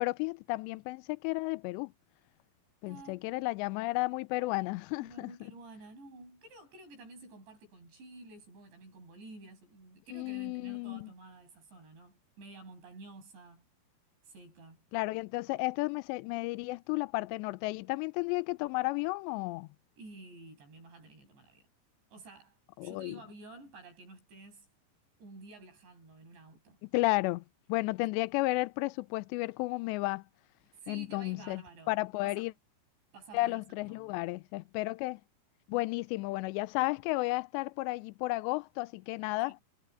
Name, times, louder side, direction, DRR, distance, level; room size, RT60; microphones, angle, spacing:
voice 1, 0.0-1.9 2.8-5.3 10.1-11.1 14.9-19.7 22.8-23.2 26.8-27.4 27.7-30.2 30.9-31.6 31.9-32.5 33.3-35.2 35.7-39.6, left 22 dB, 85° left, 2.8 m, -33 dB
voice 2, 2.8-3.3 5.0-13.7 14.2-14.8 20.0-21.7 22.1-24.7 25.2-26.8 30.8-32.5 33.1-34.2 39.4-39.5, right 2 dB, 85° right, 10.5 m, -51 dB
omnidirectional pair, 5.0 m